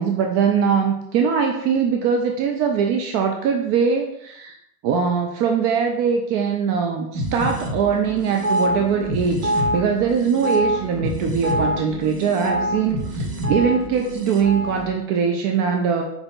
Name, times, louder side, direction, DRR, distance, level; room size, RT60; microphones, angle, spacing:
voice 1, 0.0-4.5 4.8-16.0, right 6 dB, 35° right, 3 dB, 0.5 m, -21 dB
sound 1, 7.1-14.8, equal, 75° right, 1.0 m, -26 dB
4.9 x 3.0 x 3.6 m, 0.76 s
figure-of-eight pair, 75°, 46 cm